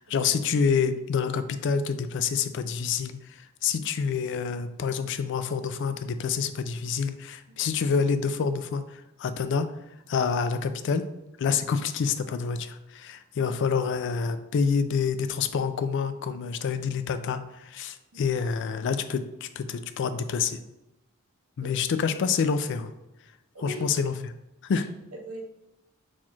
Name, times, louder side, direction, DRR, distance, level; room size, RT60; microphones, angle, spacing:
voice 1, 0.0-9.7 10.1-11.0 11.4-20.6 21.6-22.9 23.6-24.3 24.6-24.9, left 6 dB, 55° left, 10 dB, 0.3 m, -27 dB
voice 2, 23.5-23.9 24.7-24.8 25.1-25.4, right 1 dB, 75° right, -1 dB, 1.0 m, -40 dB
4.2 x 2.4 x 4.4 m, 0.96 s
head